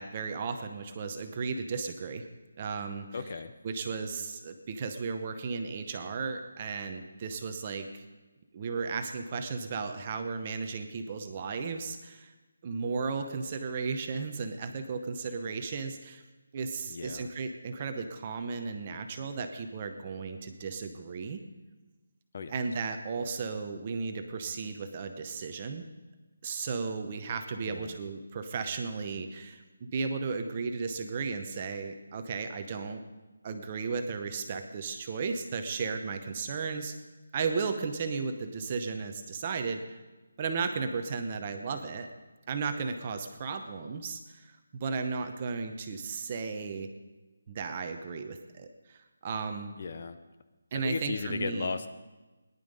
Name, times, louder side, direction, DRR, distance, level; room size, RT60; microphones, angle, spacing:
voice 1, 0.0-2.3 2.6-3.2 3.6-8.0 8.5-12.3 12.6-16.2 16.5-21.4 22.5-25.8 26.4-33.0 33.4-36.9 37.3-40.0 40.4-42.1 42.5-46.9 47.5-49.7 50.7-51.7, right 5 dB, 20° right, 7 dB, 0.7 m, -35 dB
voice 2, 3.1-3.5 16.9-17.3 22.3-22.5 27.6-28.0 49.8-50.2 50.8-51.9, left 4 dB, 30° left, 10 dB, 0.5 m, -36 dB
18.0 x 11.0 x 5.3 m, 1.2 s
hypercardioid pair, 180°, 0 cm